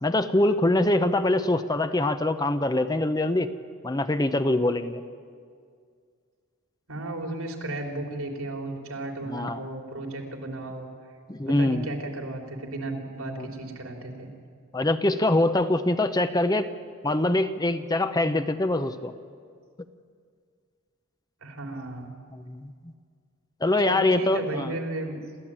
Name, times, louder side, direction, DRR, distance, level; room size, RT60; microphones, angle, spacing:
voice 1, 0.0-3.5 3.8-5.0 9.3-9.6 11.3-11.8 13.4-13.5 14.7-16.7 17.0-19.1 22.3-22.7 23.6-24.7, left 1 dB, 20° left, 10 dB, 0.7 m, -24 dB
voice 2, 6.9-10.9 11.5-14.3 21.4-22.1 23.8-25.2, right 2 dB, 85° right, 3 dB, 3.6 m, -34 dB
28.0 x 14.0 x 8.9 m, 2.1 s
head